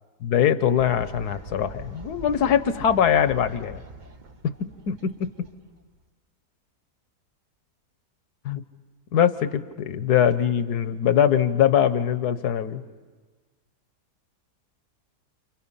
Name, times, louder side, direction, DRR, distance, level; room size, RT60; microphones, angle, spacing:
voice 1, 0.2-3.8 4.6-5.5 8.4-8.6 9.1-12.8, left 9 dB, 75° left, 12 dB, 1.5 m, -22 dB
Fowl, 0.8-6.1, right 2 dB, 35° right, 0.9 m, -43 dB
29.5 x 29.0 x 5.7 m, 1.4 s
omnidirectional pair, 1.7 m